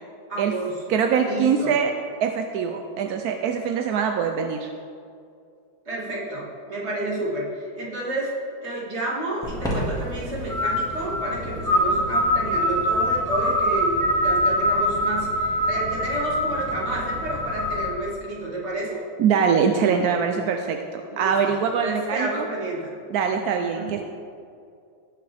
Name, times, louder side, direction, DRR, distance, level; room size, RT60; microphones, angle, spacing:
voice 1, 0.3-1.7 5.9-8.3 8.6-19.0 21.1-23.0 23.8-24.1, right 2 dB, 35° right, -6 dB, 2.3 m, -30 dB
voice 2, 0.9-1.9 2.2-4.7 19.2-22.5 23.1-24.1, right 6 dB, 70° right, 4 dB, 0.9 m, -23 dB
sound 1, 9.4-17.9, equal, ahead, 1.6 m, -24 dB
18.0 x 6.1 x 3.4 m, 2.4 s
omnidirectional pair, 2.1 m